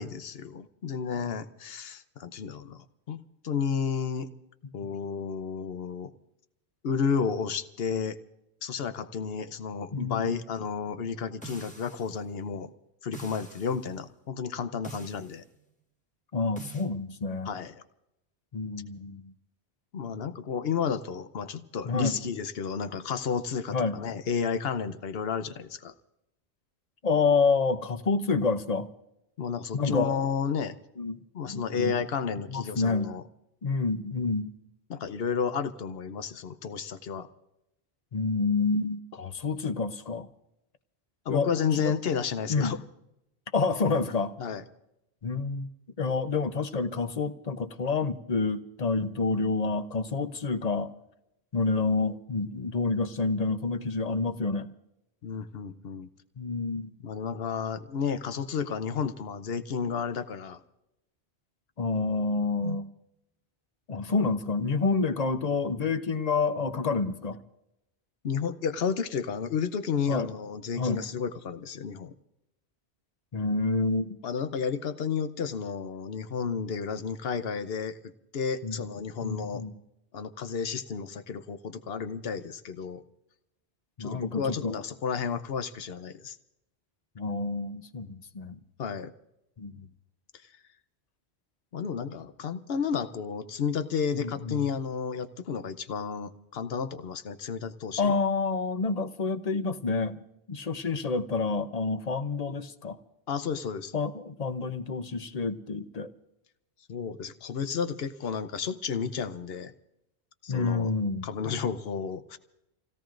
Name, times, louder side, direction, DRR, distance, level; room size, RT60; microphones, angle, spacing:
voice 1, 0.0-4.3 4.7-6.1 6.8-8.2 8.6-12.7 13.0-15.4 17.4-17.8 19.9-25.9 29.4-30.7 31.3-33.2 34.9-37.3 41.2-42.8 44.4-44.6 55.2-56.1 57.0-60.6 62.6-62.8 68.2-72.1 74.2-78.0 78.3-79.6 80.1-83.0 84.0-86.4 88.8-89.1 91.7-98.1 103.3-103.9 106.9-109.7 110.4-110.9 111.2-112.4, left 6 dB, 65° left, 11 dB, 1.0 m, -32 dB
voice 2, 9.9-10.3 16.3-17.5 18.5-19.3 21.8-22.2 23.7-24.0 27.0-28.9 29.7-30.2 31.0-31.2 31.5-31.9 32.5-33.1 33.6-34.5 38.1-40.3 41.3-41.9 42.5-42.8 43.5-44.3 45.2-45.7 46.0-50.9 51.5-54.7 56.4-56.9 61.8-62.9 63.9-67.4 70.1-70.3 70.8-71.0 73.3-74.2 78.6-78.8 79.2-79.7 84.0-84.8 87.2-88.6 89.6-89.9 94.1-94.6 98.0-100.2 100.5-103.0 103.9-106.1 110.5-111.3, left 4 dB, 40° left, 10 dB, 0.8 m, -28 dB
sound 1, 11.4-12.2 13.1-13.8 14.8-15.4 16.6-16.9, right 4 dB, 5° left, 1.5 m, -45 dB
30.0 x 17.0 x 2.5 m, 0.87 s
omnidirectional pair, 1.1 m